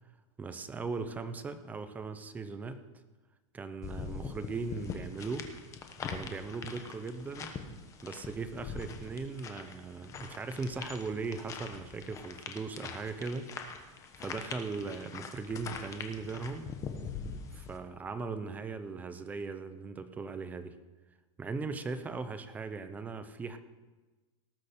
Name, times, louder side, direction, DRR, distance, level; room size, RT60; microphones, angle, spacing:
voice 1, 0.4-2.9 3.5-5.5 6.1-7.6 8.0-13.5 14.2-16.7 17.5-20.8 21.4-23.6, right 4 dB, 10° right, 10 dB, 0.6 m, -38 dB
sound 1, 3.8-17.8, left 5 dB, 20° left, 1.0 m, -43 dB
18.0 x 6.5 x 6.5 m, 1.2 s
supercardioid pair, 165°, 17 cm